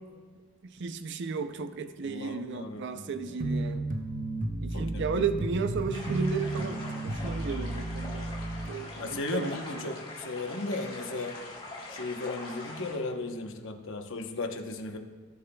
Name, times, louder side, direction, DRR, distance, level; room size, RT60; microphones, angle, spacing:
voice 1, 0.6-3.9 4.6-8.3 8.7-10.0, right 4 dB, 55° right, 9 dB, 0.5 m, -34 dB
voice 2, 2.0-3.4 4.7-5.2 9.0-11.4 11.9-15.0, left 3 dB, 60° left, 4 dB, 0.9 m, -36 dB
sound 1, 3.4-8.7, right 2 dB, 40° right, 0.8 m, -33 dB
sound 2, 5.9-13.0, left 2 dB, 25° left, 2.3 m, -43 dB
19.0 x 7.0 x 2.3 m, 1.5 s
head